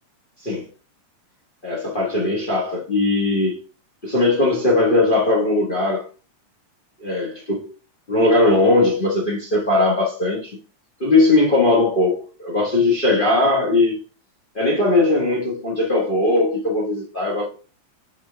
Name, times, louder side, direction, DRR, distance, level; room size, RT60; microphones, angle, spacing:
voice 1, 1.6-3.6 4.0-6.1 7.0-7.7 8.1-10.6 11.0-14.0 14.5-17.4, left 2 dB, 75° left, 0.4 m, -19 dB
5.7 x 4.7 x 4.6 m
omnidirectional pair, 3.6 m